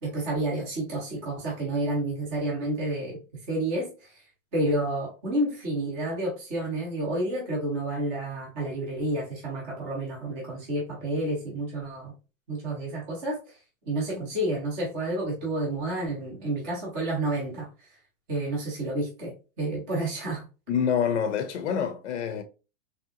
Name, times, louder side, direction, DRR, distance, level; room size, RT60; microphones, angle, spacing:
voice 1, 0.0-3.2 3.5-4.1 4.5-12.1 12.5-13.4 13.9-17.7 18.3-20.4, right 1 dB, 10° right, 0.5 m, -30 dB
voice 2, 20.7-22.4, left 7 dB, 60° left, 0.6 m, -26 dB
3.4 x 2.8 x 2.4 m
supercardioid pair, 175°, 41 cm